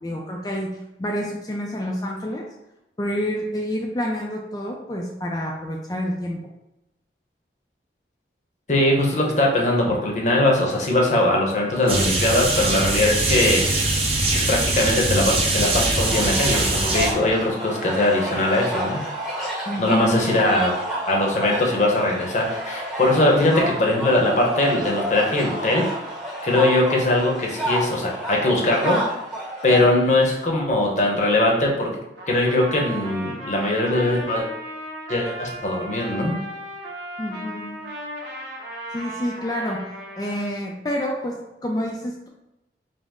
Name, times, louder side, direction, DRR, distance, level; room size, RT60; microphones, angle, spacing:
voice 1, 0.0-2.5 3.0-6.4 9.9-10.0 19.7-20.4 37.2-37.8 38.9-39.9 40.2-42.3, equal, 20° left, -1 dB, 0.4 m, -28 dB
voice 2, 8.7-13.7 14.5-19.0 19.8-20.7 21.1-25.8 26.4-29.0 29.6-31.9 32.3-34.4 35.1-36.4, left 1 dB, 40° left, -1 dB, 0.8 m, -21 dB
sound 1, 11.9-17.1, right 2 dB, 35° right, 0.7 m, -22 dB
sound 2, 15.9-29.8, equal, ahead, 0.8 m, -30 dB
Trumpet, 32.2-40.6, right 1 dB, 80° right, 1.1 m, -36 dB
5.1 x 2.0 x 3.6 m, 0.92 s
head